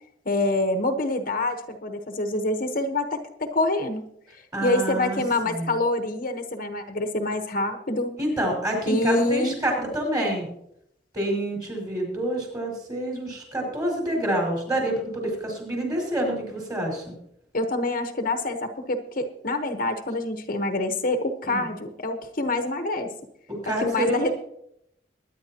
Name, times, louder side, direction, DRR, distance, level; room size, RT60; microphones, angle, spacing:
voice 1, 0.2-4.0 4.6-8.1 8.9-9.5 17.5-23.1 23.7-24.3, left 2 dB, 50° left, 6 dB, 1.2 m, -26 dB
voice 2, 4.5-5.2 5.5-5.7 8.2-10.5 11.1-17.1 21.4-21.7 23.5-24.3, right 1 dB, 20° right, 0 dB, 5.2 m, -27 dB
22.0 x 10.5 x 3.0 m, 0.73 s
head